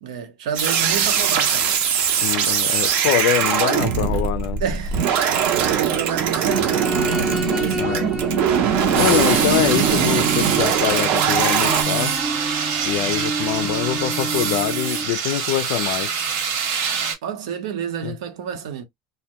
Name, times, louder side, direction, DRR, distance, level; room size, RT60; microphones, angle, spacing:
voice 1, 0.0-1.7 4.6-6.9 7.6-8.2 17.2-18.8, right 8 dB, 90° right, 0.9 m, -30 dB
sound 1, 0.5-11.8, right 8 dB, 50° right, 0.6 m, -21 dB
voice 2, 2.2-4.6 7.8-8.1 8.9-12.2 12.8-16.1 18.0-18.2, left 12 dB, 65° left, 0.4 m, -24 dB
sound 2, 6.5-15.1, equal, 5° right, 0.5 m, -29 dB
sound 3, 8.9-17.1, right 6 dB, 65° right, 1.1 m, -24 dB
2.2 x 2.1 x 2.8 m
supercardioid pair, 155°, 3 cm